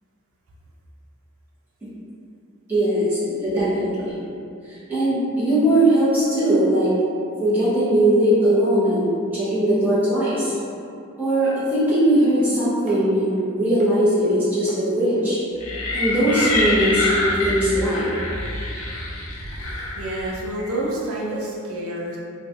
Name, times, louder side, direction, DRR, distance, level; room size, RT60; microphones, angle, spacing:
voice 1, 2.7-4.2 4.9-6.9 7.4-10.5 11.2-15.4 15.9-18.1, right 1 dB, 10° right, -13 dB, 1.0 m, -20 dB
sound 1, 11.9-12.0 12.4-12.5 12.9-13.5 13.8-13.9 14.2-14.4 14.7-14.8 15.2-15.3 16.4-16.6 17.8-17.9, equal, 35° right, 0.4 m, -38 dB
sound 2, 15.6-20.4, left 2 dB, 80° left, 0.6 m, -26 dB
voice 2, 19.6-22.2, right 1 dB, 80° right, -4 dB, 0.6 m, -29 dB
3.1 x 2.4 x 2.6 m, 2.5 s
head